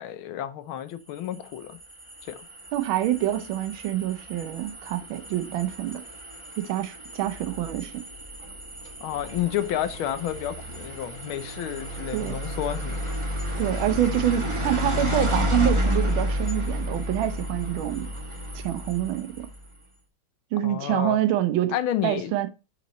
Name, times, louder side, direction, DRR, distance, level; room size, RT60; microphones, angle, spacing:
voice 1, 0.0-1.8 2.2-2.4 9.0-13.2 20.6-21.2 21.7-22.3, left 11 dB, 80° left, 1.6 m, -31 dB
sound 1, 1.1-19.7, equal, 15° right, 1.2 m, -31 dB
voice 2, 2.7-6.0 6.6-7.9 12.1-12.4 13.6-18.1 18.5-19.5 20.5-21.7 22.0-22.5, right 12 dB, 80° right, 1.5 m, -26 dB
6.1 x 5.7 x 4.1 m
omnidirectional pair, 2.2 m